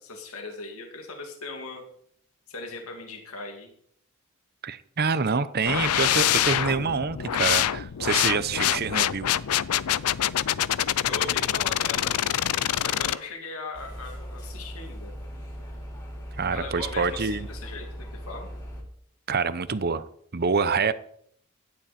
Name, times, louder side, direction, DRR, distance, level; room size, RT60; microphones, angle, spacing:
voice 1, 0.0-1.8 2.5-3.7 11.0-12.1 12.7-15.1 16.5-18.5, left 3 dB, 75° left, 2 dB, 2.4 m, -39 dB
voice 2, 4.6-9.3 16.4-17.5 19.3-20.0 20.3-20.9, right 5 dB, 45° right, 14 dB, 0.8 m, -26 dB
sound 1, 5.7-13.2, left 11 dB, 90° left, 0.5 m, -25 dB
sound 2, 13.7-18.8, equal, 20° left, 4.1 m, -39 dB
16.5 x 12.0 x 4.3 m, 0.67 s
head